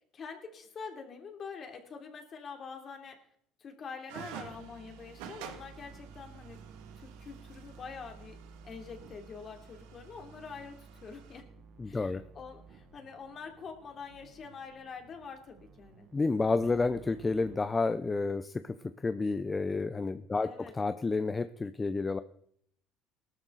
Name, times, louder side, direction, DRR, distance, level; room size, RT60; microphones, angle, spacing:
voice 1, 0.1-3.2 3.6-6.6 7.0-8.4 8.6-11.5 11.8-16.1 20.4-20.7, left 5 dB, 40° left, 4 dB, 3.1 m, -45 dB
sound 1, 4.1-11.4, right 8 dB, 90° right, 2.3 m, -50 dB
sound 2, 4.5-17.6, right 5 dB, 50° right, 1.7 m, -54 dB
voice 2, 11.8-12.2 16.1-22.2, left 3 dB, 20° left, 12 dB, 0.6 m, -30 dB
19.0 x 12.5 x 4.1 m, 0.68 s
supercardioid pair, 110°, 0 cm